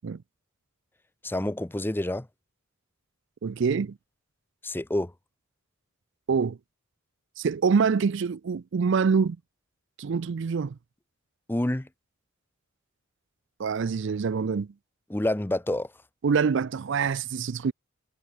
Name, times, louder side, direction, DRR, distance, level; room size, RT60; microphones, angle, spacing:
voice 1, 1.2-2.3 4.6-5.1 11.5-11.9 15.1-15.9, left 1 dB, 10° left, 0.6 m, -28 dB
voice 2, 3.4-4.0 6.3-6.6 7.4-9.4 10.0-10.8 13.6-14.7 16.2-17.7, right 5 dB, 60° right, 0.4 m, -25 dB
head